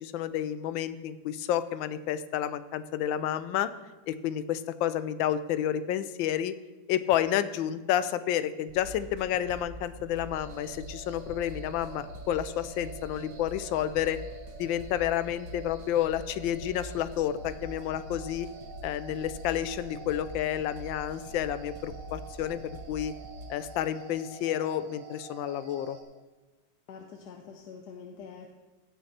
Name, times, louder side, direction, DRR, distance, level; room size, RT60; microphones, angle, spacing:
voice 1, 0.0-3.7 4.1-6.5 6.9-14.2 14.6-18.5 18.8-22.6 22.9-23.1 23.5-26.0, left 11 dB, 90° left, 13 dB, 1.3 m, -30 dB
sound 1, 8.7-23.5, right 1 dB, 90° right, 1.8 m, -45 dB
sound 2, 10.3-26.0, right 4 dB, 65° right, 1.9 m, -48 dB
voice 2, 26.9-28.5, left 6 dB, 65° left, 3 dB, 1.2 m, -45 dB
15.5 x 5.8 x 4.3 m, 1.3 s
omnidirectional pair, 2.0 m